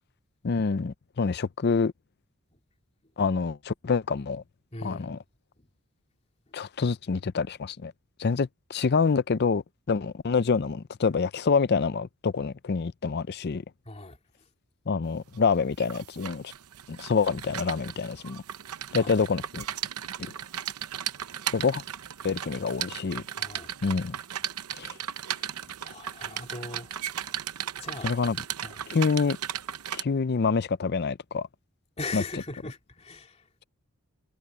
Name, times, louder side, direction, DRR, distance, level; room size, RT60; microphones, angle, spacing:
voice 1, 0.4-1.9 3.2-4.4 4.8-5.2 6.5-7.9 8.2-13.6 14.9-16.5 16.9-18.4 18.9-19.6 21.5-21.8 22.2-23.2 23.8-24.2 24.7-25.0 28.0-28.4 28.9-29.4 29.9-31.5 32.1-32.2, left 5 dB, 45° left, 0.5 m, -26 dB
voice 2, 4.7-5.1 13.9-14.2 18.9-19.1 23.4-23.7 25.3-27.3 27.8-28.1 28.6-28.8 32.0-33.4, left 2 dB, 30° left, 2.9 m, -40 dB
sound 1, 15.3-30.0, right 10 dB, 85° right, 0.8 m, -36 dB
head